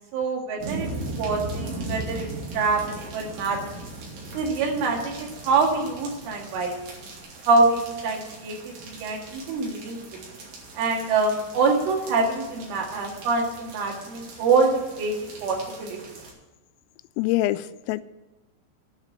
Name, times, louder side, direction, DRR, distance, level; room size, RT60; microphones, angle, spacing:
voice 1, 0.1-0.9 1.2-2.3 2.5-3.8 4.3-6.7 7.5-10.0 10.8-15.2 15.4-16.0, right 4 dB, 75° right, 1 dB, 4.4 m, -25 dB
sound 1, 0.6-16.3, right 2 dB, 50° right, 3.9 m, -39 dB
voice 2, 17.2-18.0, left 16 dB, 85° left, 14 dB, 3.2 m, -25 dB
10.0 x 7.3 x 8.8 m, 1.1 s
omnidirectional pair, 5.8 m